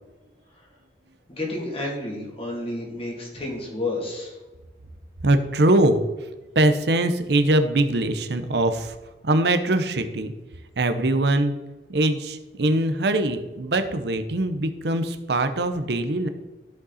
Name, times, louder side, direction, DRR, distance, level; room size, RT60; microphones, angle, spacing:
voice 1, 1.3-4.4, left 2 dB, 35° left, -2 dB, 2.6 m, -30 dB
voice 2, 5.2-6.3 6.5-9.0 9.2-10.3 10.8-11.5 11.9-16.3, right 1 dB, 65° right, 9 dB, 0.7 m, -22 dB
13.0 x 5.3 x 4.1 m, 1.1 s
head